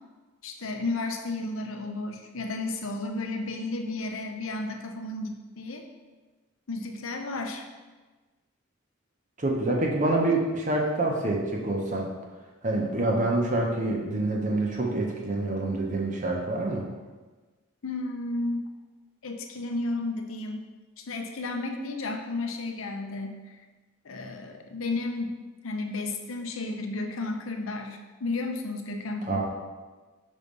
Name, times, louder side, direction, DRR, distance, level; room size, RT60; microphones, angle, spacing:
voice 1, 0.4-5.9 6.7-7.6 17.8-18.6 19.2-20.7 21.0-23.4 24.0-25.3 25.6-29.4, left 2 dB, 70° left, 4 dB, 0.7 m, -33 dB
voice 2, 9.4-12.1 12.6-16.8 29.3-29.4, right 2 dB, 35° right, -1 dB, 0.8 m, -26 dB
5.3 x 3.7 x 5.3 m, 1.3 s
head